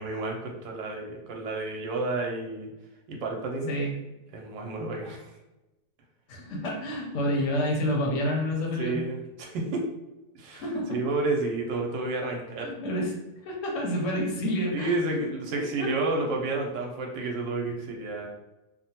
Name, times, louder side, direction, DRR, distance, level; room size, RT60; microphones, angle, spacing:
voice 1, 0.0-2.7 3.1-3.7 4.3-5.3 8.8-9.8 10.4-12.7 14.7-18.3, right 2 dB, 85° right, 0 dB, 1.3 m, -30 dB
voice 2, 6.3-9.0 10.5-11.0 12.6-13.1 13.4-14.9 15.8-15.9, equal, 60° left, -1 dB, 0.8 m, -28 dB
3.1 x 2.1 x 2.8 m, 1.0 s
omnidirectional pair, 1.9 m